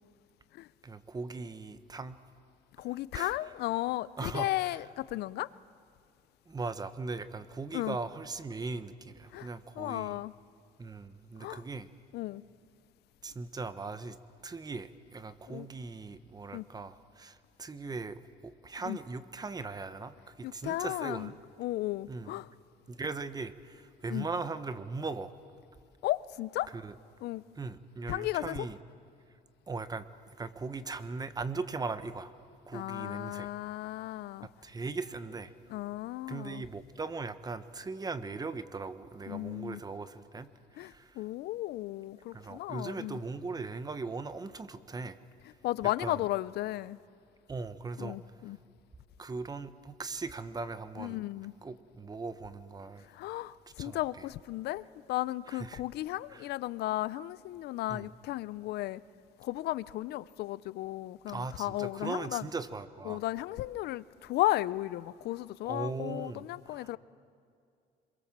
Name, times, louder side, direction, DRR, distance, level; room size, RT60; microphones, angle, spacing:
voice 1, 0.8-2.2 3.1-3.3 4.2-4.7 6.5-10.2 10.8-11.9 13.2-14.2 14.4-21.4 22.1-22.3 22.9-25.3 26.7-26.9 27.6-28.8 29.7-30.1 30.4-32.3 32.7-33.5 34.4-35.8 36.3-41.2 42.3-45.2 46.0-46.2 47.5-48.2 49.2-51.2 51.6-53.1 53.8-54.0 55.5-55.8 56.3-56.5 57.9-58.1 61.3-63.2 65.7-66.9, right 3 dB, 25° right, 13 dB, 1.1 m, -39 dB
voice 2, 2.8-5.5 7.7-8.0 9.3-9.5 9.8-10.3 11.4-11.6 12.1-12.4 15.5-15.7 16.5-16.7 18.9-19.0 20.4-21.3 21.6-22.5 24.1-24.3 26.0-26.7 27.2-27.4 28.1-28.7 32.7-34.5 35.7-36.6 39.3-39.8 40.8-43.2 45.6-47.0 48.0-48.6 51.0-51.5 53.1-59.0 59.4-62.5 63.1-67.0, left 16 dB, 75° left, 19 dB, 0.6 m, -34 dB
26.5 x 22.5 x 7.5 m, 2.3 s
cardioid pair, 110°, 17 cm